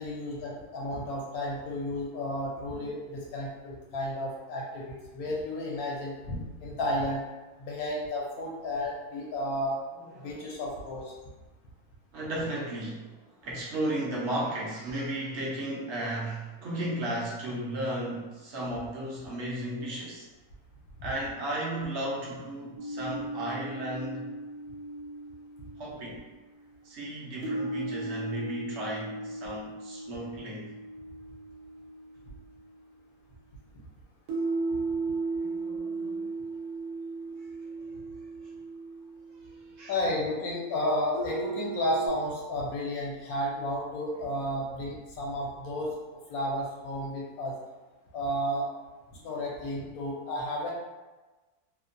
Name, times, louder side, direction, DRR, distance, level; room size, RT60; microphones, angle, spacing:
voice 1, 0.0-7.2 7.6-9.8 10.2-11.1 39.9-45.9 46.3-47.5 48.1-48.7 49.2-50.7, left 1 dB, 70° left, -3 dB, 1.0 m, -32 dB
voice 2, 10.1-10.5 12.1-13.1 13.4-20.3 21.0-24.3 25.8-26.2 26.8-30.7 35.3-36.3 39.8-40.0, right 1 dB, 60° right, -4 dB, 0.8 m, -34 dB
sound 1, 22.8-26.0 27.4-32.9 34.3-39.7 41.1-42.1, right 3 dB, 85° right, 1.2 m, -36 dB
2.9 x 2.1 x 2.5 m, 1.2 s
omnidirectional pair, 1.7 m